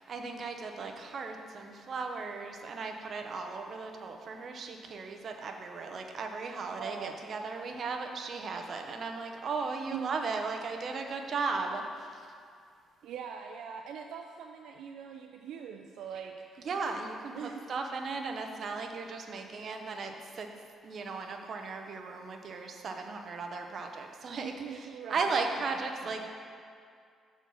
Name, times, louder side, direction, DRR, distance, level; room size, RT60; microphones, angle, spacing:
voice 1, 0.0-12.3 16.6-20.5 20.8-26.3, right 4 dB, 55° right, 4 dB, 0.7 m, -36 dB
voice 2, 6.7-7.3 9.9-10.1 13.0-16.7 17.3-17.7 24.3-25.3 26.0-26.1, right 7 dB, 80° right, 3 dB, 0.3 m, -42 dB
7.0 x 4.4 x 6.1 m, 2.3 s
cardioid pair, 90°, 0 cm